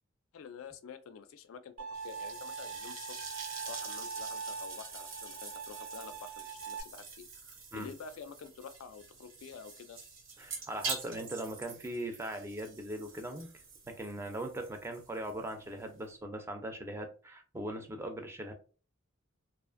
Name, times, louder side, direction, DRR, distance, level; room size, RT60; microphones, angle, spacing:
voice 1, 0.3-1.7 2.0-3.2 3.7-10.0, left 6 dB, 80° left, 0.3 m, -48 dB
Bowed string instrument, 1.8-6.8, right 5 dB, 85° right, 1.3 m, -43 dB
sound 1, 1.9-16.2, right 4 dB, 70° right, 0.8 m, -46 dB
voice 2, 10.4-13.5 13.9-18.5, right 1 dB, 15° right, 0.4 m, -40 dB
2.4 x 2.4 x 2.4 m
head